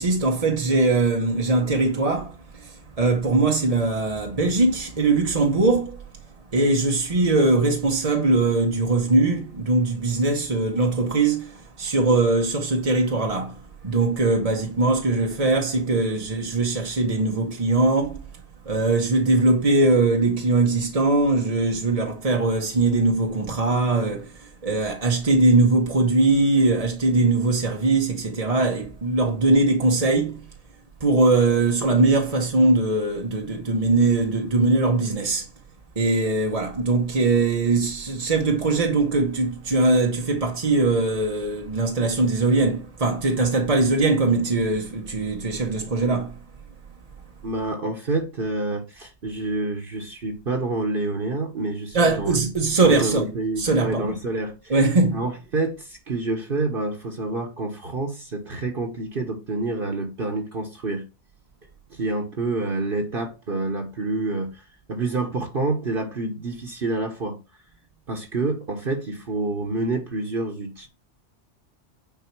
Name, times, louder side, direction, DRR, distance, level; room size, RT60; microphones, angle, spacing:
voice 1, 0.0-6.0 6.5-13.6 13.8-18.2 18.7-30.4 31.0-35.5 36.0-46.4 51.9-53.3 53.6-54.2 54.7-55.3, right 2 dB, 35° right, 1.0 m, -21 dB
voice 2, 47.4-52.5 52.8-54.8 55.1-61.0 61.9-67.4 68.1-70.9, right 2 dB, 50° right, 1.4 m, -28 dB
9.4 x 4.8 x 4.6 m
omnidirectional pair, 1.2 m